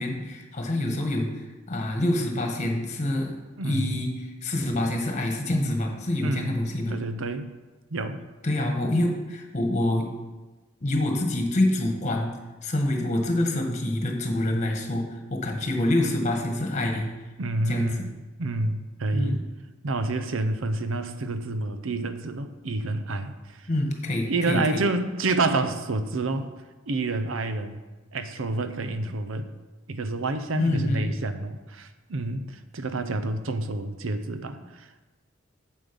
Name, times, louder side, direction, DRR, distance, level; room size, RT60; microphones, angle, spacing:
voice 1, 0.0-3.4 3.6-7.0 8.4-10.1 10.8-12.3 12.6-17.1 17.7-17.9 19.1-19.4 23.7-24.8 30.5-31.1, left 1 dB, 35° left, 3 dB, 1.4 m, -26 dB
voice 2, 3.6-4.0 6.2-6.6 6.9-7.5 7.9-8.2 17.4-19.4 19.8-23.7 24.3-26.5 26.9-27.8 28.1-29.5 29.9-35.1, right 2 dB, 75° right, 10 dB, 0.7 m, -29 dB
7.7 x 7.5 x 5.3 m, 1.2 s
head